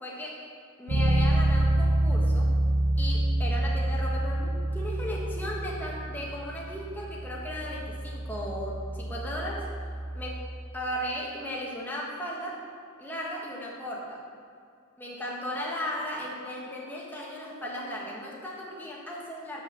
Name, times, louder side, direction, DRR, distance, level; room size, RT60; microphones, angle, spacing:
voice 1, 0.0-0.4 0.8-2.5 3.0-9.7 10.1-10.5 10.7-12.6 13.0-14.2 15.0-19.6, equal, 10° left, -4 dB, 1.2 m, -36 dB
Bass guitar, 0.9-10.7, right 1 dB, 80° right, 0.9 m, -27 dB
7.8 x 5.6 x 6.3 m, 2.3 s
head